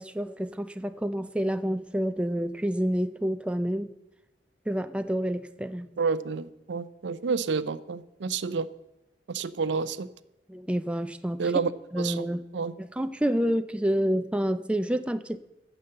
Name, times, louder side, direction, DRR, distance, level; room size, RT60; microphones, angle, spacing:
voice 1, 0.0-4.0 4.7-5.9 10.5-11.4 11.9-12.5 12.8-15.4, equal, 5° right, 10 dB, 0.4 m, -28 dB
voice 2, 6.0-8.7 9.3-10.1 11.4-11.7 12.0-12.3 12.5-12.7, right 5 dB, 85° right, 16 dB, 0.5 m, -29 dB
9.5 x 6.9 x 7.7 m, 0.90 s
head